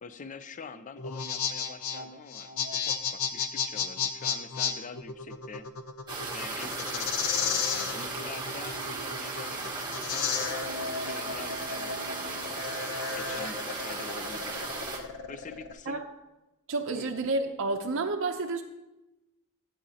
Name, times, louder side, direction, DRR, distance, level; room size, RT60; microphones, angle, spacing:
voice 1, 0.0-5.7 6.3-12.6 13.1-14.7 15.3-16.0 16.9-17.1, left 5 dB, 35° left, 12 dB, 0.4 m, -45 dB
sound 1, 1.0-15.7, left 6 dB, 70° left, 0.7 m, -33 dB
sound 2, 6.1-15.0, right 3 dB, 20° right, 1.4 m, -36 dB
voice 2, 16.7-18.6, right 3 dB, 60° right, 3 dB, 0.6 m, -30 dB
12.0 x 8.5 x 2.8 m, 1.0 s
head